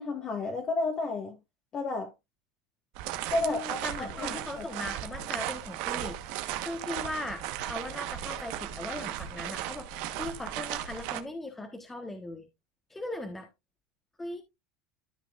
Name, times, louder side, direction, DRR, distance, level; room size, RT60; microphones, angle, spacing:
voice 1, 0.0-1.4 1.7-2.1 3.3-4.7, left 2 dB, 30° left, 1.6 m, -32 dB
sound 1, 2.9-11.2, right 12 dB, 60° right, 1.2 m, -36 dB
voice 2, 3.4-12.5 12.9-13.5 14.2-14.4, left 1 dB, 10° left, 1.3 m, -39 dB
13.0 x 5.9 x 2.4 m
supercardioid pair, 140°, 2 cm